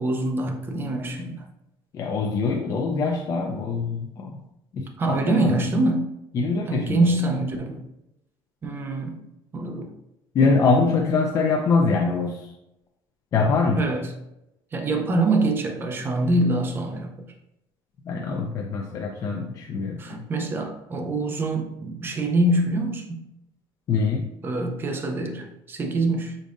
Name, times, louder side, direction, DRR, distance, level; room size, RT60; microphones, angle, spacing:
voice 1, 0.0-1.5 5.0-6.1 6.7-7.8 8.6-9.2 9.5-9.9 13.8-14.1 14.7-17.1 20.0-23.2 24.4-26.4, right 2 dB, 20° right, 3 dB, 0.6 m, -25 dB
voice 2, 1.9-4.4 4.7-5.6 6.3-7.2 10.3-12.5 13.3-13.8 18.1-20.3 23.9-24.3, left 4 dB, 35° left, 0 dB, 0.4 m, -24 dB
5.2 x 3.9 x 2.5 m, 0.87 s
cardioid pair, 170°, 10 cm